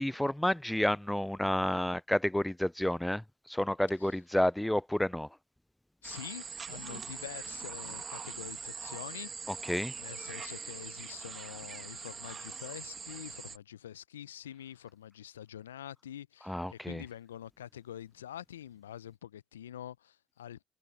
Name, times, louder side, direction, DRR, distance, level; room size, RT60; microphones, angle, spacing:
voice 1, 0.0-5.3 9.5-9.9 16.5-17.0, left 1 dB, 5° left, 0.3 m, -30 dB
voice 2, 6.0-9.7 10.0-20.6, left 11 dB, 85° left, 0.6 m, -46 dB
sound 1, 6.0-13.6, right 5 dB, 35° right, 1.7 m, -42 dB
hypercardioid pair, 55°, 0 cm